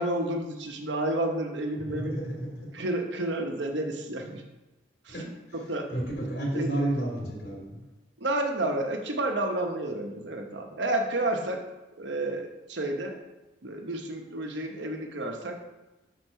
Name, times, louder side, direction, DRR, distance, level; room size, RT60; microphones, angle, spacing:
voice 1, 0.0-2.2 2.7-4.4 5.0-5.2 5.5-5.9 6.5-6.7 8.2-11.6 12.0-13.2 13.6-15.6, right 1 dB, 80° right, 3 dB, 1.0 m, -30 dB
voice 2, 1.8-2.7 5.1-5.2 5.9-7.8, right 1 dB, 70° left, -3 dB, 2.6 m, -31 dB
6.2 x 4.4 x 5.5 m, 1.1 s
head